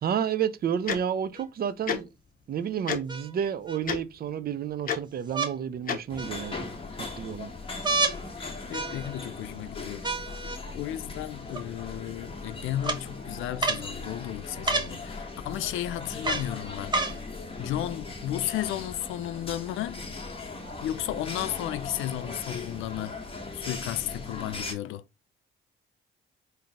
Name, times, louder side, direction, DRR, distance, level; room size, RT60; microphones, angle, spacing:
voice 1, 0.0-2.1 2.5-6.7 7.0-7.5, right 8 dB, 50° right, 0.6 m, -30 dB
Tick-tock, 0.9-1.0 1.9-2.0 2.9-3.0 3.8-4.0 4.9-5.0 5.9-6.0, left 7 dB, 45° left, 0.9 m, -28 dB
sound 1, 1.3-1.4 3.1-3.8 5.3-5.5 6.2-6.7 7.8-8.2 8.7-9.3 10.0-10.6 11.5-11.6 12.8-13.0 13.6-13.9 14.6-14.9 16.2-16.5 16.9-17.2 18.0-18.1, right 3 dB, 20° right, 0.9 m, -29 dB
sound 2, 6.1-24.7, left 3 dB, 25° left, 1.3 m, -39 dB
voice 2, 8.4-10.1 10.7-17.2 17.6-20.0 20.8-23.2 23.5-25.0, left 12 dB, 85° left, 0.5 m, -34 dB
3.9 x 2.7 x 3.5 m
cardioid pair, 90°, 20 cm